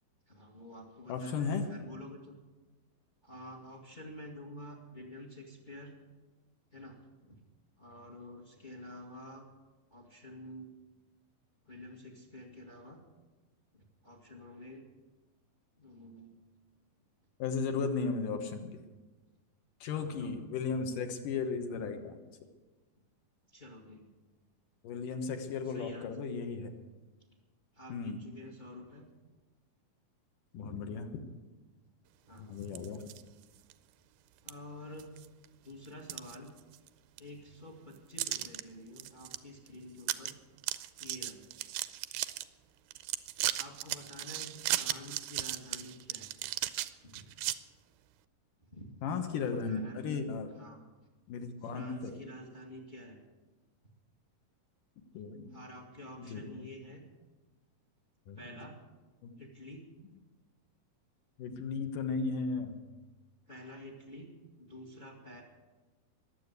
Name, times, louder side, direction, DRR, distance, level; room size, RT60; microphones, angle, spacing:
voice 1, 0.3-2.4 3.2-6.0 6.7-7.4 7.8-9.5 9.9-10.7 11.6-13.0 13.7-14.8 15.8-16.4 19.9-20.4 23.5-24.2 25.6-26.2 27.7-29.1 32.2-32.6 34.4-35.2 35.6-36.6 37.2-40.4 41.0-41.5 43.5-46.3 47.0-47.3 48.6-50.1 50.5-50.8 51.6-53.2 55.5-57.0 58.3-58.8 59.4-59.9 63.5-65.4, left 1 dB, 25° left, 2 dB, 0.9 m, -49 dB
voice 2, 1.1-1.7 17.4-18.8 19.8-22.2 24.8-26.7 27.9-28.2 30.5-31.2 32.4-33.0 49.0-50.5 51.3-52.1 55.1-55.5 56.2-56.7 58.3-58.4 59.2-59.3 61.4-62.8, left 5 dB, 65° left, 6 dB, 2.7 m, -35 dB
sound 1, 32.6-33.2 33.7-33.8 34.5-34.6 35.0-35.5 35.8-36.9 37.2-37.3 38.2-38.6 39.0-39.4 39.7-39.8 40.0-40.3 40.6-42.4 42.9-47.6, right 15 dB, 85° right, 2.5 m, -36 dB
21.0 x 8.0 x 8.1 m, 1.2 s
omnidirectional pair, 4.3 m